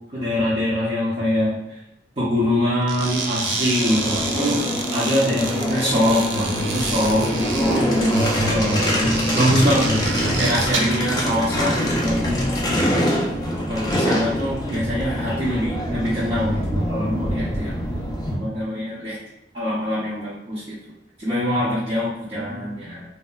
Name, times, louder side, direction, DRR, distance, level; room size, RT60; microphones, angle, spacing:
voice 1, 0.1-1.5 2.2-4.6 4.9-8.1 8.5-13.0 13.7-17.9 18.4-19.2 19.5-20.8 21.2-23.0, equal, 35° right, -9 dB, 0.6 m, -23 dB
sound 1, 2.8-11.1, right 2 dB, 85° right, 0.4 m, -27 dB
sound 2, 3.8-18.4, equal, 20° left, 0.4 m, -25 dB
2.8 x 2.1 x 2.3 m, 0.86 s
head